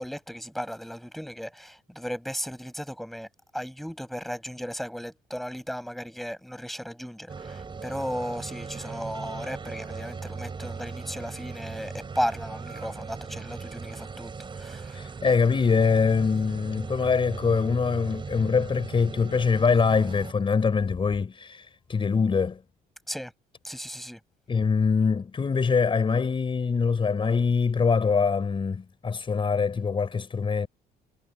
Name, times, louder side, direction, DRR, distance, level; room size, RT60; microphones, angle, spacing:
voice 1, 0.0-3.3 3.5-15.0 23.1-23.3 23.6-24.2, equal, ahead, 7.9 m, -35 dB
sound 1, 7.3-20.3, right 5 dB, 30° right, 7.4 m, -38 dB
voice 2, 14.9-22.6 24.5-30.7, left 5 dB, 30° left, 4.9 m, -24 dB
cardioid pair, 110°, 17 cm